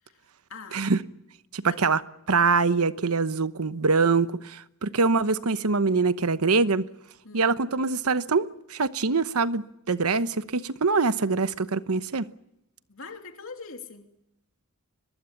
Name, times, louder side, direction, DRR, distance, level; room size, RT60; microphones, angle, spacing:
voice 1, 0.5-0.8 1.6-1.9 7.2-7.5 12.9-14.1, left 4 dB, 65° left, 2.9 m, -42 dB
voice 2, 1.5-2.0 2.3-6.8 7.3-12.3, right 4 dB, 80° right, 1.0 m, -24 dB
23.0 x 21.5 x 7.2 m
head